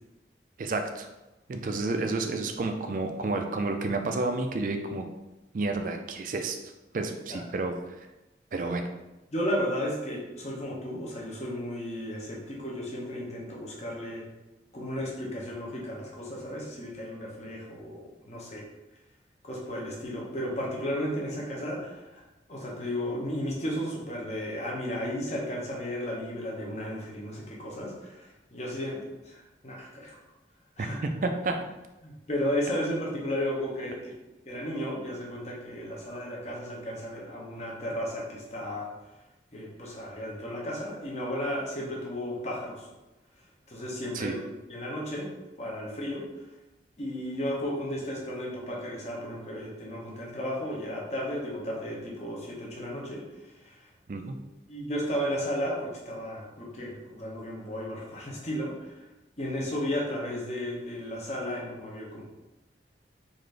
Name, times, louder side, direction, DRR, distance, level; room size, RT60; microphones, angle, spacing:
voice 1, 0.6-1.1 1.5-5.1 5.5-6.6 6.9-7.7 8.5-8.8 30.8-31.6 44.1-44.3 54.1-54.3, right 3 dB, 45° right, 5 dB, 0.4 m, -30 dB
voice 2, 9.3-14.2 14.7-18.6 19.4-22.2 22.5-30.2 30.8-31.0 32.0-34.0 34.5-38.9 39.5-42.9 43.7-44.4 44.7-45.3 45.6-46.2 47.0-53.9 54.7-59.0 59.4-62.2, equal, 40° left, -3 dB, 0.8 m, -34 dB
3.9 x 2.6 x 3.2 m, 1.0 s
head